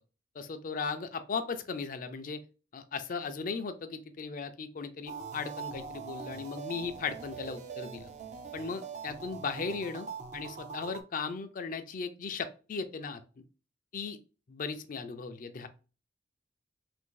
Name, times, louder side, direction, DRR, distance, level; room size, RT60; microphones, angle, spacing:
voice 1, 0.4-2.4 2.7-8.1 8.5-10.1 10.3-13.2 13.9-14.2 14.5-15.7, left 5 dB, 45° left, 10 dB, 0.4 m, -37 dB
sound 1, 5.1-11.0, right 6 dB, 40° right, 0.4 m, -43 dB
2.6 x 2.6 x 3.7 m, 0.34 s
head